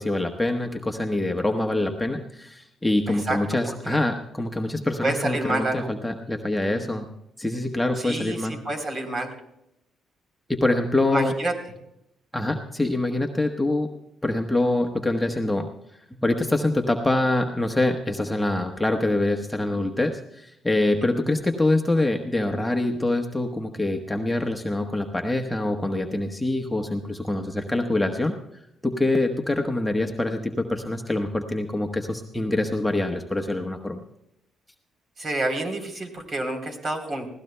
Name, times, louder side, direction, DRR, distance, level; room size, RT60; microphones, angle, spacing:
voice 1, 0.0-7.1 7.4-8.6 10.5-11.4 12.3-13.9 14.2-15.7 16.1-28.4 28.8-34.0, left 2 dB, 10° left, 3 dB, 1.1 m, -25 dB
voice 2, 3.1-3.4 3.9-4.0 5.0-5.9 8.0-9.3 11.1-11.5 21.2-21.3 35.2-37.3, right 2 dB, 40° right, 4 dB, 3.4 m, -28 dB
20.5 x 16.0 x 2.2 m, 0.81 s
cardioid pair, 90°, 0 cm